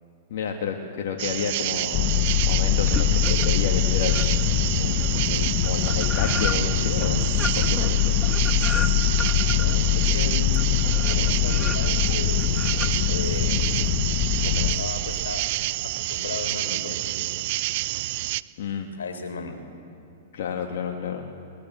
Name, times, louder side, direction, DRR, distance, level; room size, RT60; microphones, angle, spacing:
voice 1, 0.3-4.5 4.8-8.2 18.6-18.9 20.3-21.3, left 6 dB, 60° left, 1 dB, 2.1 m, -31 dB
sound 1, 1.2-18.4, right 18 dB, 55° right, 0.5 m, -28 dB
sound 2, 1.9-14.7, left 12 dB, 45° left, 1.3 m, -23 dB
sound 3, 2.9-3.7 4.1-13.9, left 5 dB, 20° left, 1.3 m, -35 dB
voice 2, 9.4-10.6 11.1-12.7 13.1-13.7 14.4-15.5 15.8-17.4 18.9-19.6, left 3 dB, 85° left, 4 dB, 3.9 m, -35 dB
23.0 x 21.0 x 7.7 m, 2.7 s
hypercardioid pair, 125°, 0 cm